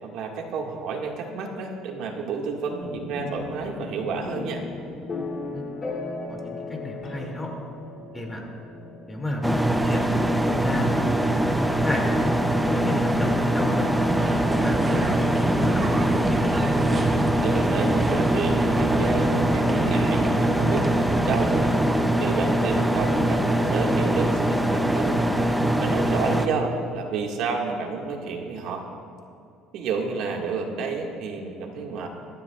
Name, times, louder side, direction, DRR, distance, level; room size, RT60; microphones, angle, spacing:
voice 1, 0.0-4.6 17.4-21.7 22.2-25.3 25.8-28.9 29.7-32.1, right 4 dB, 70° right, 1 dB, 1.9 m, -30 dB
sound 1, 2.8-16.6, left 3 dB, 30° left, 3.1 m, -38 dB
voice 2, 6.3-7.5 8.1-8.4 9.1-13.9 14.5-15.9 16.1-16.7, left 1 dB, 15° left, 0 dB, 2.6 m, -32 dB
sound 2, 9.4-26.5, right 1 dB, 5° right, 0.7 m, -23 dB
sound 3, 14.0-21.8, right 3 dB, 25° right, 1.1 m, -29 dB
24.0 x 13.5 x 2.4 m, 2.7 s
cardioid pair, 120°, 0 cm